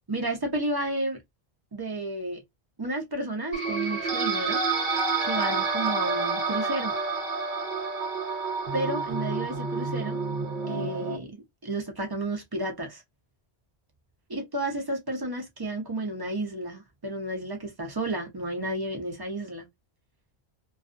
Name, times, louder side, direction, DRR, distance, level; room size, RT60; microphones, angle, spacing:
voice 1, 0.1-1.2 1.7-2.4 2.8-4.6 5.2-6.9 8.7-10.2 10.7-13.0 14.3-19.7, right 1 dB, 30° right, 0.5 m, -32 dB
sound 1, 3.5-11.2, right 4 dB, 55° right, 0.8 m, -29 dB
2.3 x 2.3 x 2.4 m
omnidirectional pair, 1.1 m